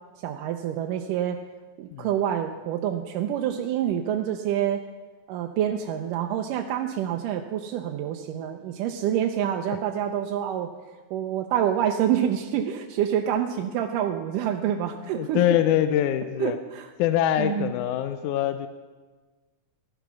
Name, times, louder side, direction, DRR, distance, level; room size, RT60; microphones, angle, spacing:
voice 1, 0.2-1.4 1.8-4.8 5.3-10.7 11.1-15.4 16.4-16.9 17.4-17.7, right 10 dB, 90° right, 3 dB, 2.3 m, -27 dB
voice 2, 15.2-16.6 17.0-18.7, left 11 dB, 80° left, 10 dB, 2.0 m, -24 dB
15.0 x 11.5 x 6.1 m, 1.3 s
omnidirectional pair, 3.7 m